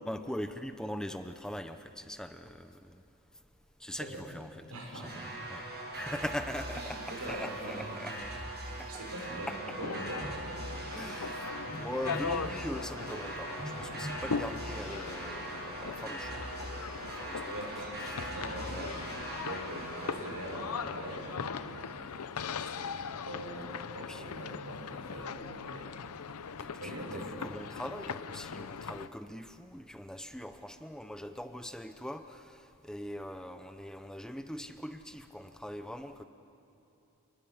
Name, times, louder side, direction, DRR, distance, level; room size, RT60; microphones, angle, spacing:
voice 1, 0.0-3.0 3.8-4.6 4.9-5.6 5.9-8.4 8.8-8.9 9.5-9.6 10.9-17.5 18.1-18.3 18.7-18.9 24.1-24.3 26.6-36.2, equal, 5° left, 8 dB, 0.6 m, -42 dB
voice 2, 3.9-4.2 4.7-5.3 6.7-7.9 8.6-10.3 17.5-21.9 22.5-25.9 26.8-27.3, right 1 dB, 90° right, 0 dB, 5.9 m, -43 dB
sound 1, 5.0-21.9, right 2 dB, 45° right, 7.5 m, -41 dB
sound 2, 9.8-29.1, left 5 dB, 85° left, 0.7 m, -40 dB
Telephone, 10.2-10.4 11.6-12.4 13.6-14.3, equal, 30° right, 2.5 m, -42 dB
29.0 x 20.5 x 7.1 m, 2.9 s
head